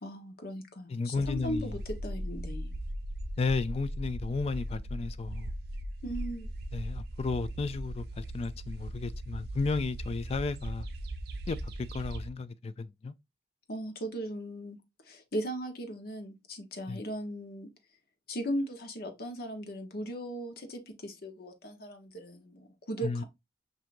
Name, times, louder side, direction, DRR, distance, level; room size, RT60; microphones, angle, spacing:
voice 1, 0.0-2.7 6.0-6.5 13.7-17.7 18.3-23.2, right 1 dB, 55° left, 0.9 m, -38 dB
voice 2, 0.9-1.7 3.4-5.5 6.7-10.9 11.5-13.1 16.9-17.0 23.0-23.2, left 4 dB, 35° left, 0.3 m, -33 dB
sound 1, 1.1-12.3, right 1 dB, 60° right, 0.5 m, -38 dB
5.8 x 2.7 x 2.5 m
head